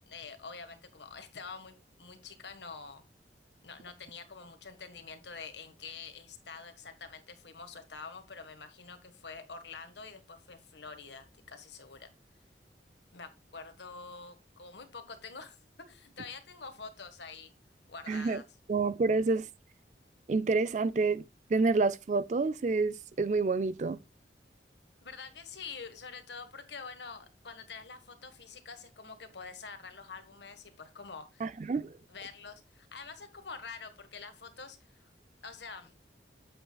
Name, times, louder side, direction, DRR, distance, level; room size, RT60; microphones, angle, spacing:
voice 1, 0.1-3.0 3.6-12.1 13.1-17.5 17.9-18.5 25.0-31.5 32.1-35.1 35.4-36.0, left 5 dB, 80° left, 1.4 m, -46 dB
voice 2, 18.1-18.4 18.7-19.5 20.3-21.2 21.5-24.0 31.4-32.0, right 3 dB, 40° right, 0.3 m, -28 dB
8.6 x 8.0 x 2.3 m
head